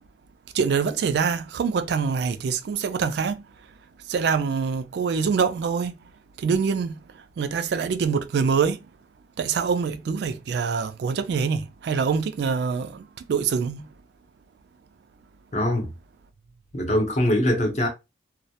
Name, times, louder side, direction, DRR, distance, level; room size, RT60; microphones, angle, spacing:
voice 1, 0.5-3.4 4.1-5.9 6.4-6.9 7.4-8.8 9.4-13.0 13.3-13.8, right 6 dB, 65° right, 0.3 m, -24 dB
voice 2, 15.5-15.9 16.7-17.9, left 1 dB, 40° left, 0.7 m, -22 dB
2.2 x 2.0 x 2.7 m
head